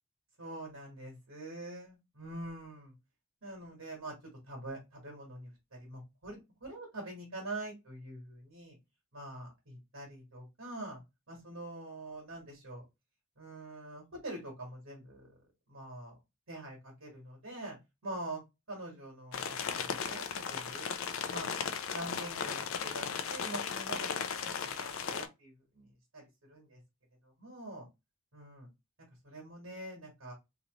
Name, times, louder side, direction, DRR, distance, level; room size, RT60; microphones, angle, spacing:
voice 1, 0.4-2.9 3.4-4.1 4.5-8.8 9.1-11.0 11.3-12.8 13.4-15.3 15.7-16.2 16.5-17.8 18.0-18.4 18.7-20.9 21.3-21.5 21.9-25.9 26.1-26.2 26.5-26.8 27.4-27.9 28.3-28.7 29.2-30.3, right 1 dB, 80° right, -2 dB, 1.4 m, -45 dB
sound 1, 19.3-25.3, left 6 dB, 70° left, 0.4 m, -36 dB
2.8 x 2.5 x 3.0 m, 0.24 s
head